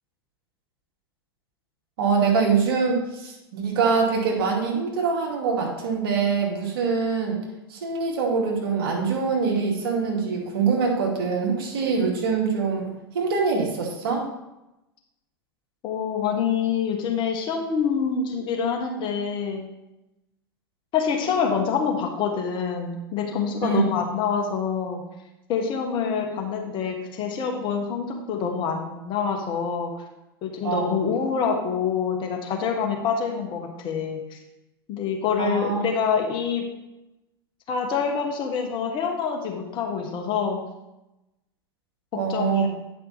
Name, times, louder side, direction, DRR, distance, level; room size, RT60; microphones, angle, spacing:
voice 1, 2.0-7.4 7.7-12.9 13.1-14.3 23.6-23.8 30.6-31.0 35.4-35.8 42.1-42.7, right 5 dB, 65° right, -1 dB, 2.2 m, -24 dB
voice 2, 15.8-19.7 20.9-25.0 25.5-30.0 30.4-34.4 34.9-36.7 37.7-40.6 42.1-42.7, left 6 dB, 40° left, 2 dB, 1.5 m, -26 dB
9.3 x 5.4 x 4.1 m, 0.94 s
hypercardioid pair, 95°, 13 cm